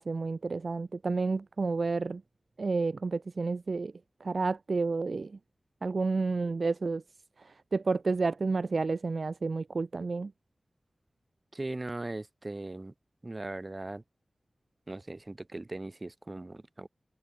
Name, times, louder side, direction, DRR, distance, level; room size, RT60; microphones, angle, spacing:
voice 1, 0.0-2.2 2.6-3.9 4.2-5.3 5.8-7.0 7.7-10.3, right 4 dB, 65° right, 0.7 m, -30 dB
voice 2, 11.5-12.9 13.2-14.0 14.9-16.9, right 2 dB, 30° right, 6.0 m, -39 dB
wide cardioid pair, 90°, 0 cm